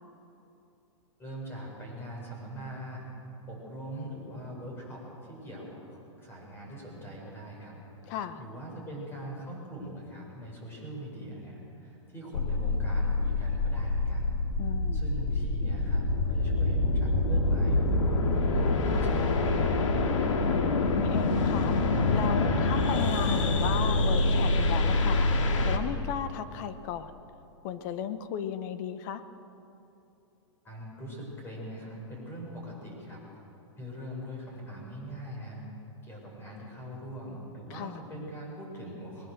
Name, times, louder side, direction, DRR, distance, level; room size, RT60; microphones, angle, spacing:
voice 1, 1.2-3.1 3.5-14.4 14.6-20.3 30.6-33.2 33.8-35.6 36.0-39.3, equal, 15° left, -2 dB, 6.2 m, -42 dB
voice 2, 8.1-8.4 14.6-15.0 20.6-21.8 22.1-25.3 25.6-27.1 27.6-29.2 37.7-38.0, left 9 dB, 40° left, 11 dB, 1.0 m, -35 dB
sound 1, 12.3-25.8, left 2 dB, 80° left, 2.3 m, -26 dB
21.5 x 19.5 x 6.7 m, 2.8 s
hypercardioid pair, 155°, 16 cm